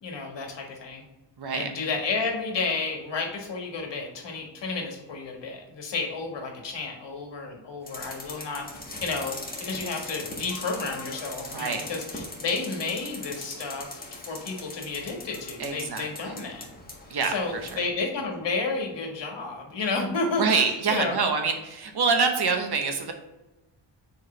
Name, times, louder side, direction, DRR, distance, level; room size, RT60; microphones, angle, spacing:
voice 1, 0.0-1.0 1.5-8.7 9.0-9.3 9.6-16.7 17.2-21.2, left 4 dB, 65° left, 1 dB, 1.7 m, -31 dB
voice 2, 1.4-1.7 11.4-11.8 15.6-16.3 17.1-17.8 20.4-23.1, right 5 dB, 55° right, 5 dB, 1.0 m, -26 dB
sound 1, 7.9-17.8, left 2 dB, 20° left, 1.5 m, -40 dB
6.5 x 4.6 x 3.3 m, 1.0 s
wide cardioid pair, 125°, 45 cm